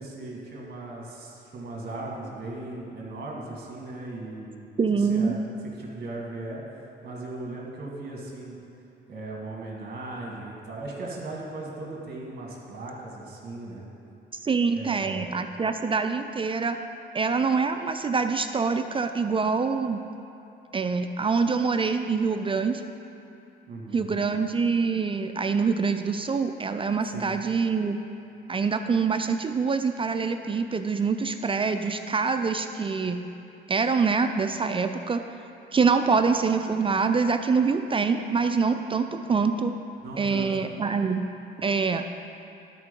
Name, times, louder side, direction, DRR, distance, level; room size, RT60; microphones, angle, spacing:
voice 1, 0.0-4.6 4.9-5.5 5.8-6.6 7.0-8.6 9.1-13.8 14.7-15.3 23.7-24.2 27.1-27.3 40.0-40.5, right 2 dB, 50° right, -2 dB, 2.1 m, -37 dB
voice 2, 4.8-5.3 14.4-16.8 17.1-20.0 20.7-22.9 23.9-28.0 28.5-33.2 33.7-35.2 35.7-39.7 40.2-41.2 41.6-42.1, right 5 dB, 25° right, 7 dB, 0.4 m, -25 dB
12.0 x 4.5 x 5.2 m, 2.9 s
cardioid pair, 90°, 20 cm